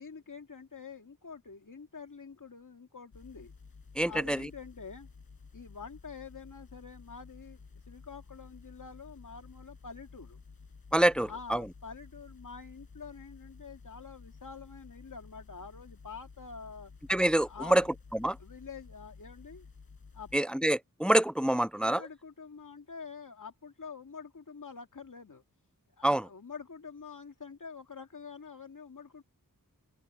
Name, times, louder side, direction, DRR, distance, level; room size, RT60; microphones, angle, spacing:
voice 1, 0.0-3.5 4.0-5.1 5.5-10.4 11.2-16.9 17.5-17.9 18.4-19.7 20.1-20.3 21.8-25.4 26.0-29.2, left 5 dB, 60° left, 2.3 m, -47 dB
sound 1, 3.1-20.4, left 4 dB, 85° left, 6.8 m, -53 dB
voice 2, 4.0-4.4 10.9-11.6 17.1-17.8 18.1-18.4 20.3-22.0 26.0-26.2, right 1 dB, 5° left, 0.3 m, -26 dB
open air
wide cardioid pair, 50°, 35 cm